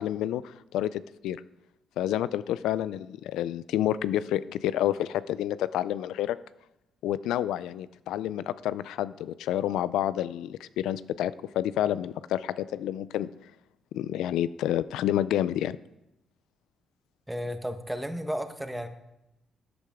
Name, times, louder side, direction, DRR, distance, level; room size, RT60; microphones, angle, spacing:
voice 1, 0.0-1.4 2.0-6.4 7.0-13.3 13.9-15.8, left 12 dB, 80° left, 17 dB, 0.4 m, -29 dB
voice 2, 17.3-18.9, equal, 5° right, 7 dB, 1.3 m, -33 dB
13.5 x 8.4 x 3.6 m, 0.88 s
supercardioid pair, 60°, 0 cm